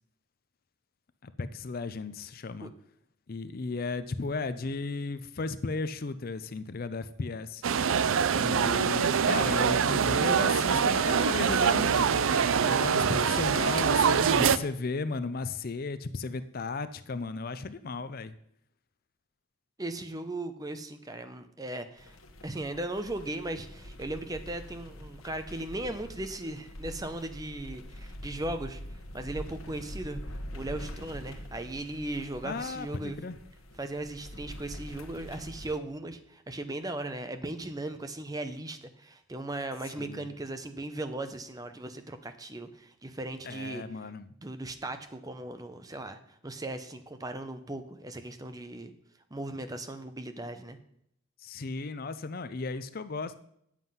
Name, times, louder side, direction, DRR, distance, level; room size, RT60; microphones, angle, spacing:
voice 1, 1.2-2.7 3.3-7.6 8.3-12.2 12.6-18.3 32.4-33.3 40.0-40.3 43.4-44.3 51.4-53.4, left 3 dB, 45° left, 13 dB, 0.5 m, -35 dB
sound 1, 7.6-14.6, right 6 dB, 75° right, 0.5 m, -24 dB
voice 2, 19.8-22.2 22.4-33.2 33.8-43.8 44.4-48.9 49.3-50.8, right 1 dB, 20° right, 9 dB, 0.7 m, -37 dB
sound 2, 22.0-35.8, equal, 90° left, 1.1 m, -44 dB
9.5 x 7.4 x 5.6 m, 0.72 s
head